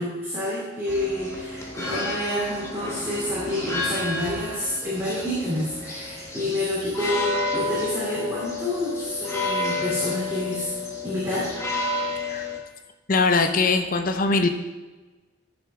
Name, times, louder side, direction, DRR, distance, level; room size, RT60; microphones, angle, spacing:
voice 1, 0.0-10.7 11.0-11.5, left 1 dB, 15° right, -11 dB, 3.3 m, -28 dB
sound 1, 0.9-12.6, left 3 dB, 15° left, 1.4 m, -31 dB
voice 2, 13.1-14.5, left 3 dB, 45° left, 6 dB, 0.7 m, -21 dB
14.0 x 7.0 x 3.7 m, 1.2 s
head